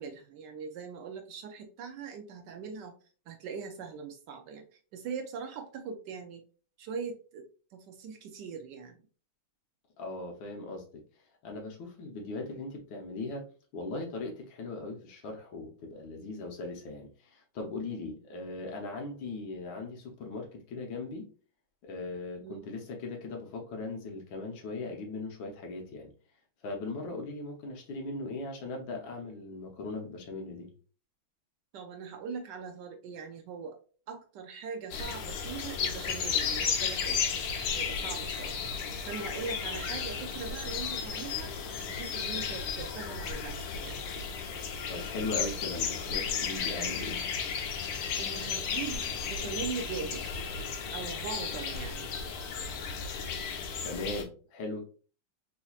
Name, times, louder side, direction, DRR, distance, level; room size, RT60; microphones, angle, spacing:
voice 1, 0.0-2.9 3.3-4.6 4.9-6.4 6.8-7.4 7.7-9.0 22.4-22.7 31.7-33.8 34.1-37.2 37.7-38.6 39.1-41.5 41.9-44.0 48.2-50.3 50.9-52.1, right 5 dB, 80° right, 0.9 m, -41 dB
voice 2, 10.0-11.0 11.4-13.4 13.7-21.2 21.8-26.1 26.6-30.7 44.9-47.2 53.8-54.9, left 3 dB, 65° left, 1.5 m, -39 dB
sound 1, 34.9-54.2, left 6 dB, 80° left, 1.5 m, -34 dB
4.3 x 2.7 x 2.3 m
omnidirectional pair, 2.3 m